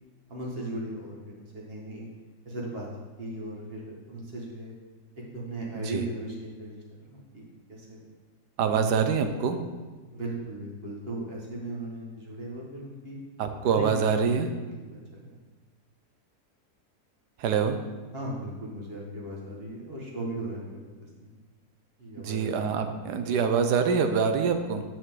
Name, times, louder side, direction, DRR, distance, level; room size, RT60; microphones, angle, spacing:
voice 1, 0.3-2.1 2.4-2.9 3.2-4.7 5.3-7.4 7.7-8.0 8.6-9.0 10.1-13.2 13.6-15.3 18.1-21.3 22.0-22.5, right 1 dB, 35° right, -3 dB, 1.7 m, -37 dB
voice 2, 8.6-9.6 13.4-14.5 17.4-17.8 22.2-24.8, right 6 dB, 80° right, 7 dB, 1.3 m, -25 dB
9.4 x 6.0 x 3.7 m, 1.3 s
omnidirectional pair, 1.8 m